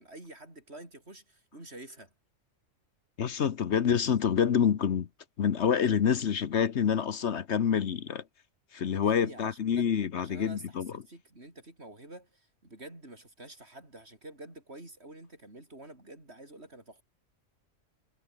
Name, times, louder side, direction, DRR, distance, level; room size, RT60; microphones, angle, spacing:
voice 1, 0.0-2.1 9.0-9.9 10.2-17.0, right 1 dB, 55° right, 6.2 m, -48 dB
voice 2, 3.2-5.1 5.4-8.2 8.7-10.9, left 7 dB, 60° left, 1.2 m, -27 dB
omnidirectional pair, 1.3 m